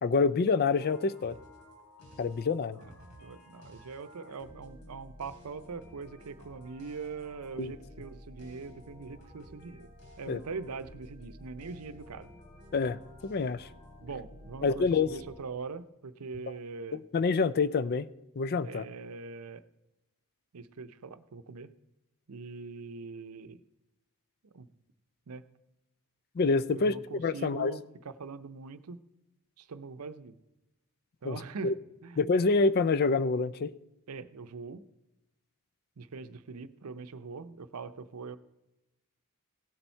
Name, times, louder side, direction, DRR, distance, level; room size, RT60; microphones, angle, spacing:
voice 1, 0.0-1.4 2.2-2.8 7.6-7.7 10.3-10.4 12.7-13.0 13.2-13.7 14.6-15.1 16.9-18.1 18.4-18.8 26.4-27.7 31.2-31.4 31.6-31.7 32.2-33.7, left 4 dB, 45° left, 16 dB, 0.4 m, -27 dB
sound 1, 0.7-15.4, left 1 dB, 75° left, 3.2 m, -52 dB
voice 2, 2.8-9.9 10.2-12.3 14.0-17.0 18.6-19.6 20.5-21.7 22.3-23.6 24.5-24.7 25.3-25.4 26.7-29.0 29.6-30.3 31.2-31.7 32.0-32.2 34.1-34.8 36.0-38.4, right 4 dB, 80° right, 12 dB, 0.6 m, -42 dB
16.5 x 7.0 x 4.4 m, 0.97 s
head